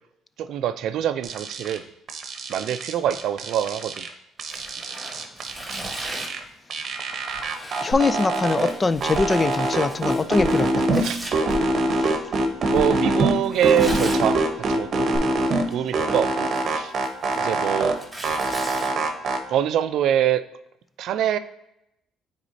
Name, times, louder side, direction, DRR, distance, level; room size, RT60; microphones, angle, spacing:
voice 1, 0.4-1.8 2.5-4.0 11.0-11.2 12.7-15.1 15.7-16.9 17.4-17.9 19.5-20.4 21.0-21.4, right 10 dB, 70° right, 0.4 m, -24 dB
sound 1, 1.2-1.8 2.1-4.1 4.4-6.4 6.7-8.7 9.0-11.0 11.3-13.3 13.6-15.6 15.9-17.9 18.2-19.4, right 2 dB, 50° right, 0.9 m, -24 dB
Tearing, 4.4-6.5 7.3-11.3 13.4-14.2 15.5-16.0 16.4-18.9, right 1 dB, ahead, 1.8 m, -39 dB
voice 2, 7.8-11.0, left 3 dB, 25° left, 0.3 m, -23 dB
sound 2, 7.9-8.0 8.5-8.6 9.1-9.3 10.4-10.5 11.5-11.7 12.7-12.8 13.8-14.1 15.1-15.2, equal, 90° left, 1.7 m, -32 dB
9.0 x 4.2 x 2.7 m
cardioid pair, 100°, 0 cm